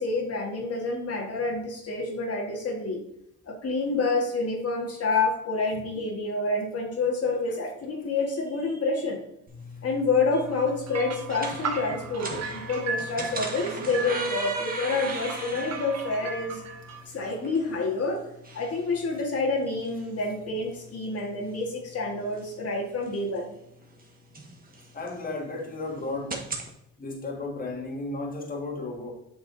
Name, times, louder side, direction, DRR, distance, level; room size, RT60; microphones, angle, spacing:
voice 1, 0.0-3.0 3.4-9.2 9.8-16.6 17.1-18.3 18.5-23.5, left 3 dB, 55° left, -1 dB, 1.7 m, -28 dB
sound 1, 9.5-26.7, right 2 dB, 30° right, 1.6 m, -39 dB
Sheep Bells, 10.3-17.0, right 5 dB, 60° right, 1.2 m, -37 dB
voice 2, 24.9-26.4 27.0-29.1, left 2 dB, 30° left, 0 dB, 1.8 m, -34 dB
8.2 x 5.9 x 2.7 m, 0.79 s
cardioid pair, 90°, 30 cm